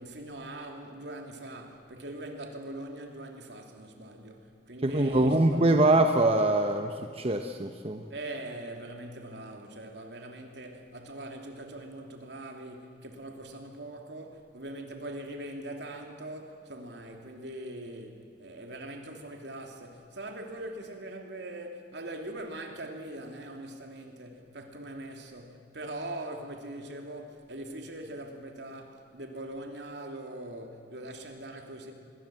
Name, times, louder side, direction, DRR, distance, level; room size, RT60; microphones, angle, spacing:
voice 1, 0.0-5.7 8.1-31.9, right 1 dB, 75° right, 3.1 m, -42 dB
voice 2, 4.8-8.0, right 2 dB, 35° right, 1.0 m, -24 dB
26.0 x 22.0 x 7.7 m
head